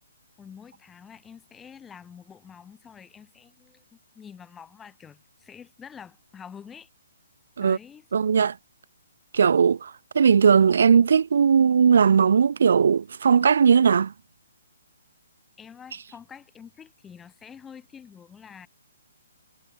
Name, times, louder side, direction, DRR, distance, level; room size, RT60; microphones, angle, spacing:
voice 1, 0.4-6.9 7.6-8.1 15.6-18.7, left 7 dB, 10° left, 7.1 m, -47 dB
voice 2, 8.1-8.6 9.3-14.1, right 6 dB, 65° right, 0.5 m, -18 dB
hypercardioid pair, 165°, 0 cm